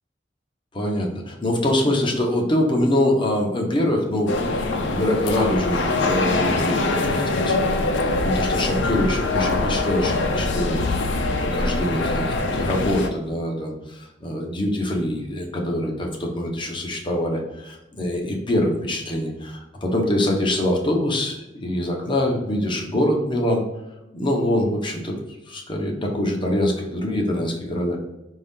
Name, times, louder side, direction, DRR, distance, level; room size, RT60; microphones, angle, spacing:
voice 1, 0.7-4.6 4.9-23.6 24.1-25.2 25.5-28.0, left 1 dB, 25° left, 0 dB, 0.9 m, -24 dB
sound 1, 4.3-13.1, left 2 dB, 90° left, 0.6 m, -23 dB
5.4 x 2.7 x 3.6 m, 0.96 s
head